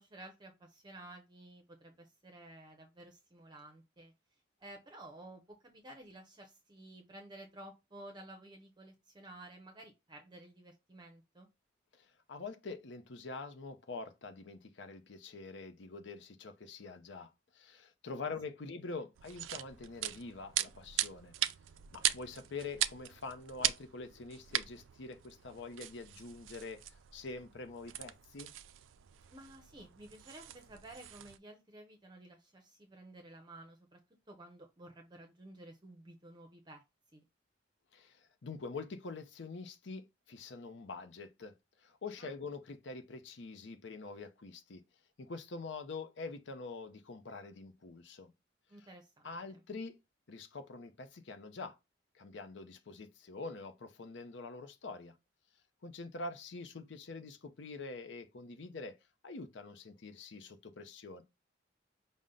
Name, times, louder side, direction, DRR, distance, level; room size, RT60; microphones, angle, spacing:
voice 1, 0.0-4.1 4.6-11.5 29.3-34.0 34.3-36.8 37.1-37.2 42.2-42.3 48.7-49.6, right 1 dB, 20° right, 0.6 m, -53 dB
voice 2, 11.9-21.3 21.9-28.5 37.9-41.5 41.8-44.8 45.2-48.3 48.8-48.9 49.2-50.0 50.3-51.8 52.1-55.1 55.8-59.0 59.2-61.2, left 3 dB, 70° left, 0.6 m, -45 dB
sound 1, 19.2-31.4, right 12 dB, 85° right, 0.4 m, -40 dB
5.4 x 2.1 x 3.7 m
head